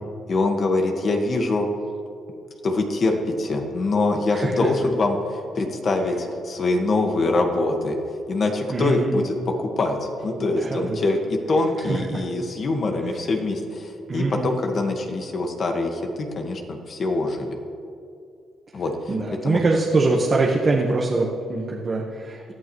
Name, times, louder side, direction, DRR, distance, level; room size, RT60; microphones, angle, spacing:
voice 1, 0.3-1.7 2.6-8.0 8.3-17.5 18.7-18.9 19.4-19.6, left 2 dB, 45° left, 3 dB, 1.7 m, -24 dB
voice 2, 4.3-4.7 8.7-9.2 10.4-11.0 11.8-12.2 14.1-14.5 19.1-22.4, right 3 dB, 35° right, -2 dB, 1.4 m, -23 dB
18.5 x 11.5 x 3.2 m, 2.4 s
cardioid pair, 90°, 0 cm